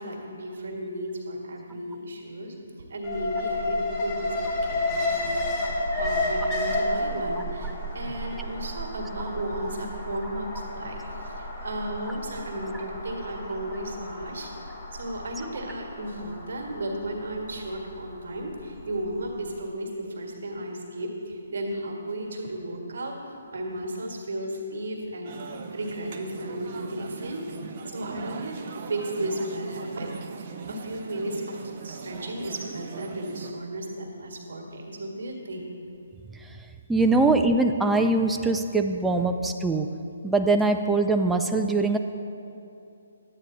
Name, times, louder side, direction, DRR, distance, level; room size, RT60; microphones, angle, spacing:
voice 1, 0.0-2.5 2.9-14.5 14.9-23.2 23.5-25.3 25.7-27.5 27.9-30.1 30.7-35.7, right 1 dB, 65° right, 0 dB, 1.7 m, -34 dB
Alarm, 3.0-19.1 19.5-19.6, left 1 dB, 25° left, 1.6 m, -31 dB
sound 1, 25.2-33.5, right 5 dB, 40° right, 0.7 m, -40 dB
voice 2, 36.9-39.9 40.2-42.0, right 3 dB, 5° right, 5 dB, 0.4 m, -22 dB
11.5 x 8.8 x 4.0 m, 2.7 s
figure-of-eight pair, 145°, 0 cm